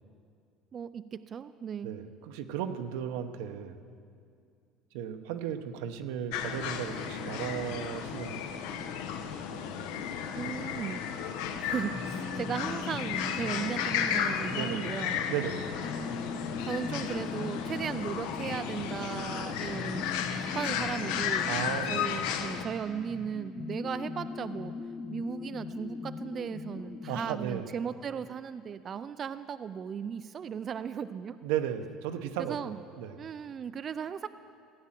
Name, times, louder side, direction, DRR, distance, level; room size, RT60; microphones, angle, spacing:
voice 1, 0.7-1.9 10.4-11.0 11.6-15.2 16.6-20.0 20.5-21.6 21.9-24.7 25.1-31.4 32.4-32.8 33.2-34.3, right 7 dB, 30° right, 12 dB, 0.3 m, -36 dB
voice 2, 1.8-3.8 4.9-8.4 14.5-14.9 15.3-15.7 21.5-22.1 27.1-27.7 31.4-33.2, right 9 dB, 90° right, 8 dB, 0.8 m, -35 dB
sound 1, 6.3-22.6, left 8 dB, 85° left, 0.9 m, -34 dB
sound 2, 11.9-27.4, left 4 dB, 25° left, 0.6 m, -41 dB
15.5 x 8.7 x 7.4 m, 2.3 s
cardioid pair, 150°, 0 cm